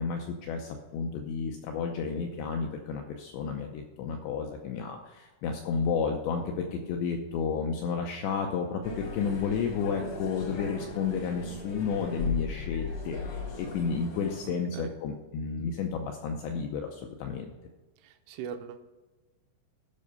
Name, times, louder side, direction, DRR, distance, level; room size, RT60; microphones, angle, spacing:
voice 1, 0.0-17.5, left 5 dB, 90° left, 3 dB, 2.5 m, -32 dB
sound 1, 8.8-14.5, left 3 dB, 70° left, 1.3 m, -37 dB
voice 2, 14.4-15.0 18.0-18.8, right 7 dB, 85° right, 7 dB, 3.2 m, -41 dB
13.0 x 5.5 x 5.4 m, 1.2 s
omnidirectional pair, 5.9 m